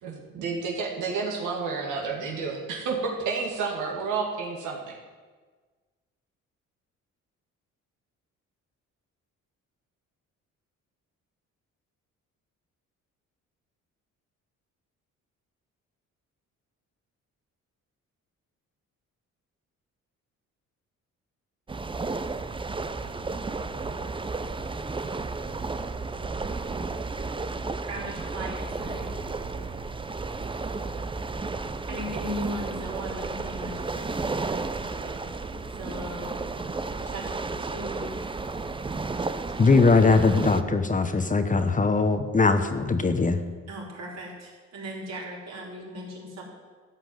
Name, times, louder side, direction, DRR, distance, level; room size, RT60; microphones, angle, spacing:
voice 1, 0.0-5.0, right 4 dB, 85° right, -1 dB, 2.3 m, -30 dB
sound 1, 21.7-40.6, right 3 dB, 15° right, 0.7 m, -33 dB
voice 2, 27.8-29.1 31.9-36.7 37.0-38.1 43.7-46.4, equal, 60° right, -3 dB, 4.3 m, -38 dB
voice 3, 39.6-43.4, left 4 dB, 25° left, 8 dB, 1.0 m, -21 dB
13.0 x 6.0 x 9.3 m, 1.4 s
cardioid pair, 90°, 30 cm